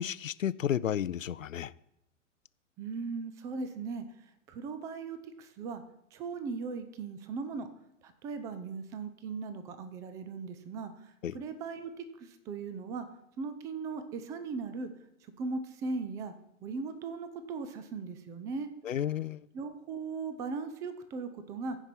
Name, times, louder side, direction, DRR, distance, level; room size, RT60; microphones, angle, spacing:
voice 1, 0.0-1.7 11.2-11.4 18.8-19.5, left 10 dB, 75° left, 0.6 m, -32 dB
voice 2, 2.8-4.0 4.5-5.8 6.1-7.7 8.0-13.1 13.4-14.9 15.4-16.3 16.6-18.7 19.5-21.8, right 4 dB, 10° right, 0.4 m, -38 dB
15.0 x 5.3 x 5.9 m
figure-of-eight pair, 110°, 39 cm